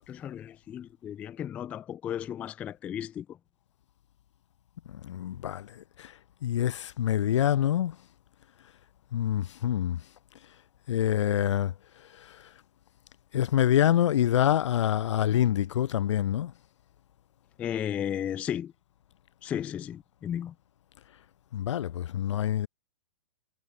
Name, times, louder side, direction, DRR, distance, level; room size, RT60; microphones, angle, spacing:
voice 1, 0.1-3.3 17.6-18.7 19.4-20.5, left 10 dB, 10° left, 0.3 m, -34 dB
voice 2, 5.1-5.6 6.4-7.9 9.1-10.0 10.9-11.7 13.3-16.5 21.5-22.7, left 11 dB, 70° left, 0.7 m, -26 dB
hypercardioid pair, 165°, 16 cm